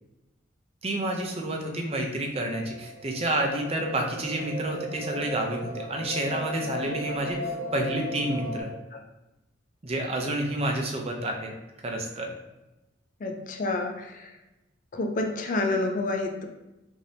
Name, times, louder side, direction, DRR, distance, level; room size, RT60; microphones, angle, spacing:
voice 1, 0.8-8.7 9.8-11.5 11.8-12.3, right 1 dB, 35° right, 2 dB, 0.6 m, -29 dB
sound 1, 2.3-8.6, equal, 65° right, 1.0 m, -37 dB
voice 2, 13.2-14.3 14.9-16.5, left 2 dB, 45° left, 4 dB, 0.4 m, -29 dB
5.0 x 2.7 x 2.7 m, 0.98 s
head